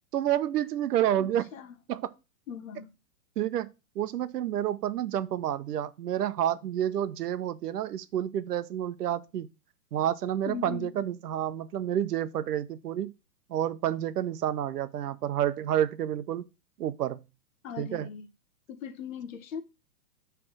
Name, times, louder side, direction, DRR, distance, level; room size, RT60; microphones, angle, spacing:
voice 1, 0.1-1.4 1.9-2.1 3.4-3.7 4.0-9.5 9.9-13.1 13.5-16.4 16.8-17.2 17.8-18.1, right 11 dB, 70° right, 0.8 m, -29 dB
voice 2, 1.2-1.8 2.5-2.9 10.4-10.9 17.6-18.3 18.7-19.6, left 7 dB, 55° left, 1.0 m, -39 dB
7.8 x 3.4 x 6.1 m
hypercardioid pair, 165°, 48 cm